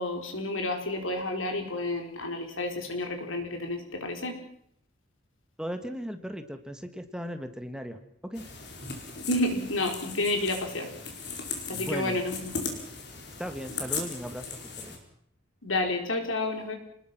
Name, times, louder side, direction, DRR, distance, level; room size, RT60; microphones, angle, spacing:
voice 1, 0.0-4.4 9.3-10.9 11.7-12.7 15.6-16.8, left 2 dB, 90° left, 4 dB, 4.5 m, -30 dB
voice 2, 5.6-8.0 8.2-8.5 11.7-12.2 13.4-14.5 14.8-14.9, equal, 5° right, 7 dB, 1.6 m, -37 dB
sound 1, 8.3-15.0, left 4 dB, 55° left, 5.0 m, -38 dB
29.0 x 20.0 x 6.1 m, 0.69 s
head